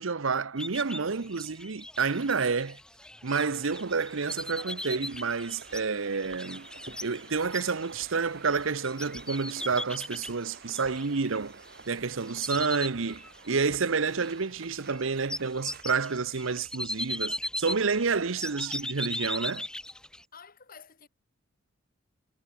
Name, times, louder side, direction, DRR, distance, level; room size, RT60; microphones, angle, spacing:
voice 1, 0.0-2.8 3.2-6.7 7.0-11.6 11.9-19.7, right 5 dB, 75° right, 0.9 m, -29 dB
sound 1, 0.6-11.9 12.2-13.7 14.0-20.2, left 1 dB, 5° left, 0.8 m, -39 dB
sound 2, 3.7-15.9, right 4 dB, 55° right, 5.9 m, -50 dB
voice 2, 20.3-21.1, left 6 dB, 45° left, 2.9 m, -50 dB
head